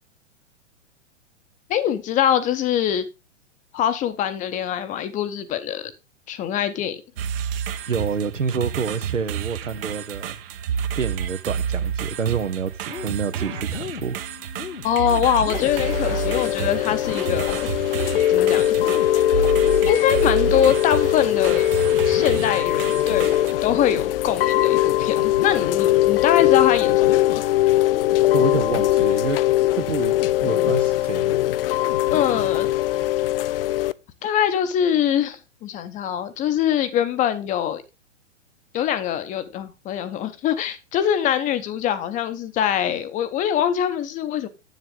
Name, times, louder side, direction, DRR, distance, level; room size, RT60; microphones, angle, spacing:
voice 1, 1.7-3.1 3.7-5.9 6.3-7.0 14.8-17.7 18.3-18.8 19.9-21.7 22.1-27.4 32.1-32.7 34.2-37.8 38.7-44.5, left 10 dB, 20° left, 0.7 m, -23 dB
sound 1, 7.2-23.5, right 8 dB, 50° right, 0.9 m, -30 dB
voice 2, 7.9-10.4 11.0-14.2 28.3-29.4 29.7-30.1 30.4-31.4, right 6 dB, 85° right, 1.0 m, -27 dB
sound 2, 12.9-32.9, left 6 dB, 85° left, 0.8 m, -37 dB
Chime / Rain, 15.5-33.9, left 14 dB, 50° left, 0.4 m, -21 dB
8.1 x 7.3 x 3.7 m
figure-of-eight pair, 110°, 37 cm